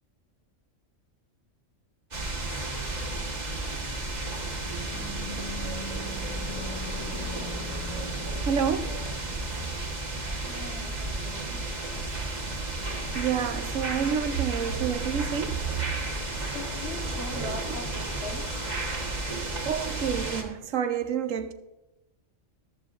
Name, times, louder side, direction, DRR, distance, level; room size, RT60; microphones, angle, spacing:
sound 1, 2.1-20.4, right 2 dB, 35° right, 1.5 m, -33 dB
Car passing by / Truck / Engine, 3.9-12.2, left 2 dB, 70° left, 2.2 m, -43 dB
voice 1, 8.4-9.1 13.1-15.7 17.6-17.8 19.6-21.5, right 8 dB, 85° right, 1.1 m, -29 dB
voice 2, 10.5-11.8 16.5-18.7, left 2 dB, 55° left, 1.7 m, -40 dB
14.0 x 13.0 x 2.5 m
omnidirectional pair, 1.3 m